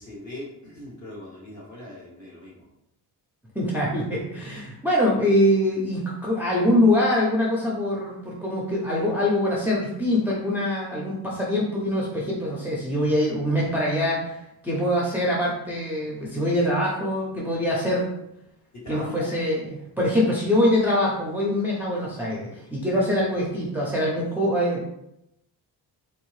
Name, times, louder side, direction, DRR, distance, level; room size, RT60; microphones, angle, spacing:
voice 1, 0.0-2.7 18.7-19.3, left 1 dB, 45° left, -4 dB, 1.2 m, -40 dB
voice 2, 3.5-18.1 18.9-24.9, left 1 dB, 5° right, -5 dB, 0.4 m, -24 dB
3.8 x 2.7 x 3.1 m, 0.82 s
wide cardioid pair, 165°, 41 cm